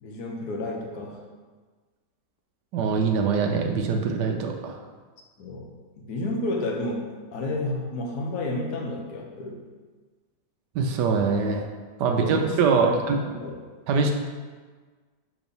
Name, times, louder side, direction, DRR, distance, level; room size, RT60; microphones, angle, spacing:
voice 1, 0.0-1.2 5.4-5.7 6.0-9.6 12.2-13.0 13.3-13.6, left 2 dB, 70° left, 0 dB, 1.4 m, -31 dB
voice 2, 2.7-4.8 10.7-11.7 12.0-13.2 13.9-14.1, right 5 dB, 85° right, 3 dB, 1.2 m, -23 dB
6.9 x 3.0 x 5.3 m, 1.4 s
omnidirectional pair, 1.8 m